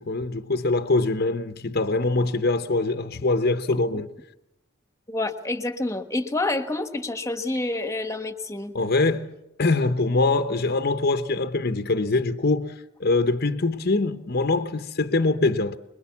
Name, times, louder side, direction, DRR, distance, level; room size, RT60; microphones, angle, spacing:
voice 1, 0.0-4.1 8.7-12.7 13.0-15.8, left 3 dB, 55° left, 0.9 m, -23 dB
voice 2, 5.1-8.7, left 2 dB, 15° left, 1.4 m, -28 dB
25.0 x 22.0 x 7.2 m
head